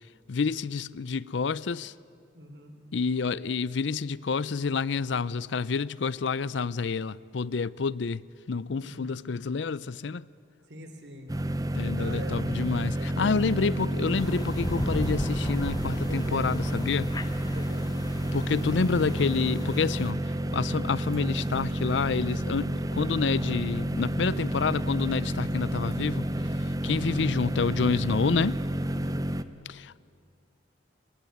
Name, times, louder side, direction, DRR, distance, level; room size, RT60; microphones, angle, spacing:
voice 1, 0.3-1.9 2.9-10.3 11.7-17.2 18.3-20.2 20.5-26.3 26.8-28.6 29.7-30.0, left 5 dB, 80° left, 0.5 m, -28 dB
voice 2, 2.3-2.7 8.7-9.1 10.7-11.3 12.0-12.4 12.9-13.5 15.8-16.4 17.5-17.9 28.9-29.3, equal, 65° right, 3.4 m, -43 dB
sound 1, 11.3-29.4, right 1 dB, 20° right, 0.7 m, -30 dB
sound 2, 14.1-20.1, left 1 dB, 20° left, 1.0 m, -37 dB
24.5 x 20.5 x 9.4 m
head